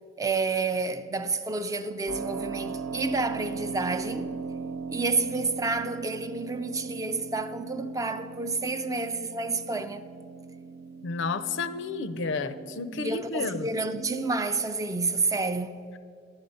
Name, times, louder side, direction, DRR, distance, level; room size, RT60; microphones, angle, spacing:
voice 1, 0.2-4.3 4.9-10.1 12.9-15.8, right 3 dB, 15° right, 0.4 m, -29 dB
Keyboard (musical), 2.1-14.6, right 4 dB, 90° right, 0.5 m, -39 dB
voice 2, 11.0-13.7, left 4 dB, 65° left, 0.5 m, -31 dB
11.5 x 8.8 x 5.3 m
head